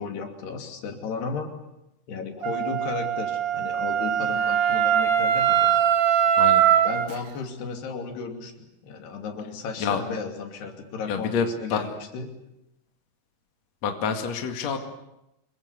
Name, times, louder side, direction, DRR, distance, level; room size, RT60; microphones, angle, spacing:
voice 1, 0.0-1.5 2.1-5.8 6.8-12.3, left 5 dB, 70° left, 4 dB, 4.7 m, -34 dB
Wind instrument woodwind instrument, 2.4-7.1, right 10 dB, 75° right, 1.3 m, -22 dB
voice 2, 11.1-11.9 13.8-14.8, left 6 dB, 45° left, 5 dB, 2.9 m, -27 dB
28.5 x 22.0 x 8.2 m, 0.88 s
omnidirectional pair, 4.9 m